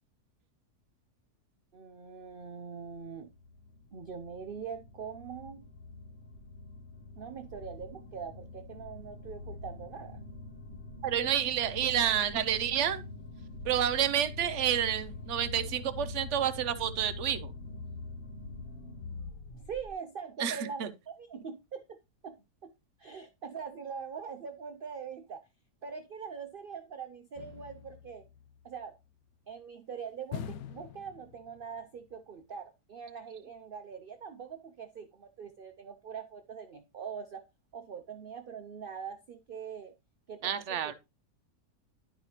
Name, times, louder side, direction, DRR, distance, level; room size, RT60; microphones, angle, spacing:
voice 1, 1.7-3.3 3.9-5.6 7.2-10.2 19.5-22.0 22.2-22.7 23.0-25.4 25.8-28.2 28.6-28.9 29.5-37.4 37.7-39.9 40.3-40.9, right 6 dB, 85° right, 0.4 m, -43 dB
sound 1, 2.4-19.9, left 3 dB, 40° left, 0.8 m, -44 dB
voice 2, 11.0-13.0 13.6-17.5 20.4-20.9 40.4-40.9, right 10 dB, 60° right, 0.8 m, -29 dB
sound 2, 27.4-29.0 30.3-31.8 32.1-32.2, left 8 dB, 70° left, 1.0 m, -44 dB
11.0 x 4.8 x 2.9 m
omnidirectional pair, 1.7 m